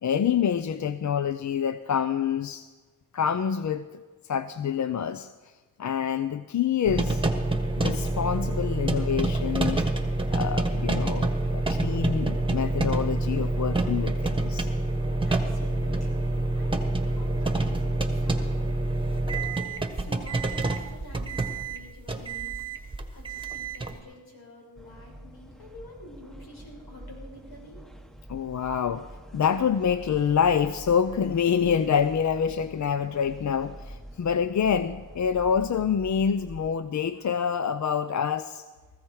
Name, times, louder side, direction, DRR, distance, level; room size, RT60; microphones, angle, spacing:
voice 1, 0.0-2.7 3.1-3.8 4.2-5.3 5.8-7.3 7.8-9.9 10.3-14.7 28.3-29.1 29.3-38.6, left 7 dB, 50° left, 12 dB, 0.6 m, -26 dB
sound 1, 6.9-24.0, right 2 dB, 15° right, 1.4 m, -27 dB
voice 2, 15.1-16.7 17.2-22.6 22.8-27.8, left 1 dB, 75° left, -1 dB, 6.2 m, -48 dB
sound 2, 24.8-36.7, right 1 dB, ahead, 1.0 m, -46 dB
18.5 x 15.0 x 4.8 m, 1.3 s
wide cardioid pair, 100°, 37 cm